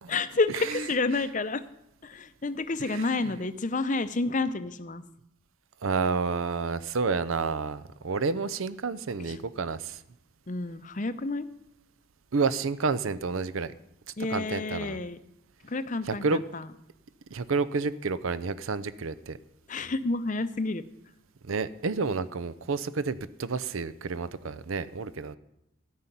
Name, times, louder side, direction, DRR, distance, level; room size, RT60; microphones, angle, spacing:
voice 1, 0.1-1.6 2.0-5.0 9.3-9.4 10.5-11.5 14.2-15.2 15.6-16.7 19.7-20.8, left 3 dB, 35° left, 12 dB, 0.6 m, -29 dB
voice 2, 2.8-3.2 5.8-10.0 12.3-13.7 14.3-15.0 16.1-16.4 17.3-19.4 21.5-25.4, right 4 dB, 75° right, 16 dB, 0.6 m, -30 dB
13.5 x 5.7 x 9.3 m, 0.80 s
head